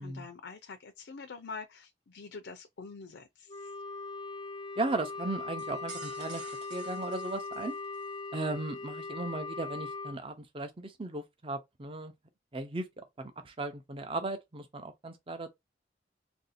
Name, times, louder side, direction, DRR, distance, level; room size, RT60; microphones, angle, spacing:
voice 1, 0.0-3.7, left 4 dB, 85° left, 0.5 m, -45 dB
Wind instrument woodwind instrument, 3.5-10.2, left 3 dB, 30° left, 0.4 m, -40 dB
voice 2, 4.8-6.4 6.7-7.7 8.3-12.1 12.5-15.5, right 2 dB, 30° right, 0.6 m, -36 dB
sound 1, 5.6-8.1, right 7 dB, 80° right, 0.7 m, -50 dB
2.8 x 2.7 x 4.1 m
head